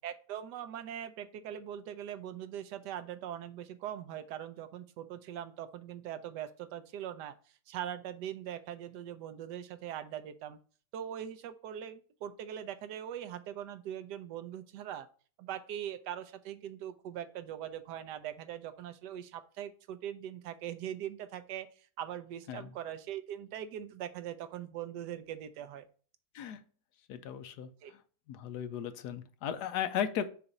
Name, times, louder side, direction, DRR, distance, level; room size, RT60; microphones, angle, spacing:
voice 1, 0.0-7.4 7.7-10.6 10.9-15.1 15.4-25.9 27.8-27.9, right 10 dB, 75° right, 1.1 m, -41 dB
voice 2, 27.1-27.7 28.3-30.3, left 9 dB, 70° left, 1.1 m, -36 dB
6.8 x 2.6 x 5.3 m
omnidirectional pair, 2.0 m